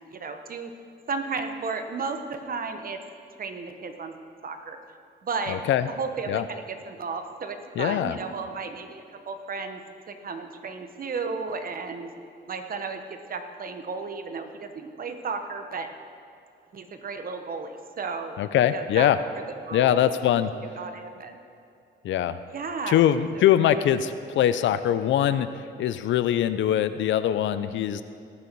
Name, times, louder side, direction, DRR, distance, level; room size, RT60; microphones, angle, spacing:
voice 1, 0.1-0.7 1.1-3.0 3.4-4.1 4.4-4.8 5.2-5.6 5.9-9.8 10.1-12.1 12.5-15.9 16.7-18.4 18.7-19.1 19.7-20.0 20.6-21.4 22.5-23.1 23.3-23.7, right 4 dB, 45° right, 7 dB, 1.1 m, -34 dB
voice 2, 5.5-5.9 6.3-6.4 7.8-8.2 18.4-19.2 19.7-20.5 22.0-22.4 22.9-28.0, left 11 dB, 70° left, 13 dB, 0.6 m, -22 dB
18.0 x 6.7 x 4.6 m, 2.5 s
cardioid pair, 90°, 20 cm